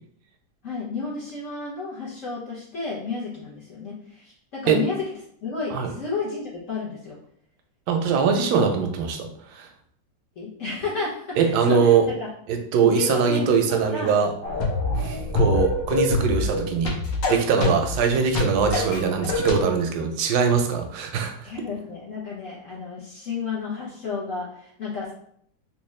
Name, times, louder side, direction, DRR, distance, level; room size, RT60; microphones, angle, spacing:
voice 1, 0.6-5.1 5.4-7.2 10.4-12.3 12.8-14.2 21.4-25.1, left 4 dB, 55° left, -5 dB, 1.0 m, -32 dB
voice 2, 7.9-9.7 11.4-12.1 12.5-14.3 15.0-17.0 17.3-21.5, right 6 dB, 70° right, 4 dB, 1.0 m, -22 dB
sound 1, 14.4-19.6, left 2 dB, 75° left, 1.5 m, -25 dB
3.5 x 2.9 x 3.1 m, 0.65 s
omnidirectional pair, 2.0 m